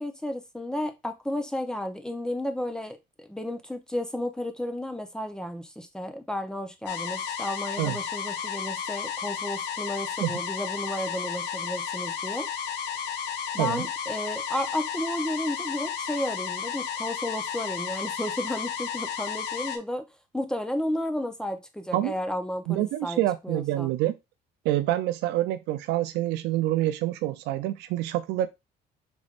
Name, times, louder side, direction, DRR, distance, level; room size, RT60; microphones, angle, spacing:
voice 1, 0.0-12.5 13.5-20.1 20.3-23.2 23.4-23.9, left 1 dB, 5° left, 0.7 m, -33 dB
sound 1, 6.9-19.8, left 7 dB, 80° left, 0.8 m, -33 dB
voice 2, 22.7-24.1 24.6-28.5, right 14 dB, 90° right, 0.4 m, -27 dB
5.1 x 3.4 x 2.4 m
cardioid pair, 110°, 17 cm